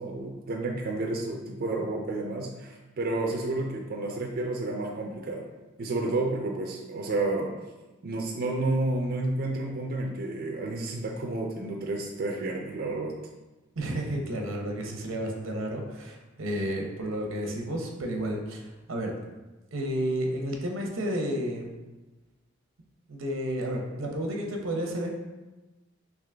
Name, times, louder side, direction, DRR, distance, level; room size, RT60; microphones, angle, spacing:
voice 1, 0.0-5.4 5.8-7.5 8.0-13.1, right 2 dB, 50° right, 1 dB, 0.4 m, -30 dB
voice 2, 13.8-19.1 19.7-21.7 23.1-25.1, right 1 dB, 90° right, 1 dB, 0.7 m, -31 dB
3.7 x 2.9 x 3.3 m, 1.1 s
head